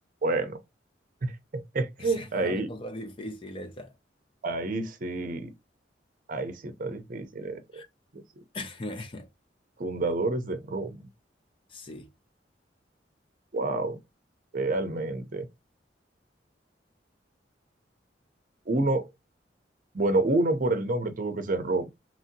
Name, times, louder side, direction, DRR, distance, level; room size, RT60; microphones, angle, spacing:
voice 1, 0.2-0.6 1.2-2.7 4.4-5.5 6.3-7.8 8.1-8.2 9.8-11.1 13.5-14.0 14.5-15.5 18.7-19.0 19.9-21.9, right 2 dB, 50° right, 0.6 m, -28 dB
voice 2, 2.0-3.9 7.7-7.9 8.5-9.3 11.7-12.1, left 1 dB, 30° left, 0.5 m, -39 dB
3.0 x 2.7 x 2.6 m
head